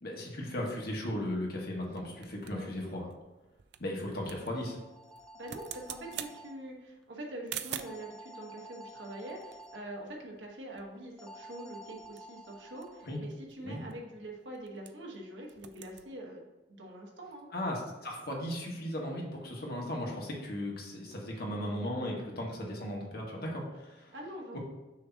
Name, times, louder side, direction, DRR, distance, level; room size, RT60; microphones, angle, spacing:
voice 1, 0.0-3.1 3.8-4.8 13.0-13.2 13.6-13.8 17.5-24.1, left 1 dB, 60° left, -2 dB, 1.5 m, -36 dB
sound 1, 0.6-8.1 8.9-10.5 10.8-10.9 11.2-11.5 11.9-15.2 15.4-16.1, right 10 dB, 65° right, 0.4 m, -47 dB
sound 2, 4.6-6.5 7.8-9.8 11.2-13.2, right 1 dB, 5° left, 0.5 m, -50 dB
voice 2, 5.3-16.4 16.8-17.5 24.1-24.6, right 1 dB, 90° right, -1 dB, 1.3 m, -44 dB
6.3 x 2.9 x 5.7 m, 1.0 s
head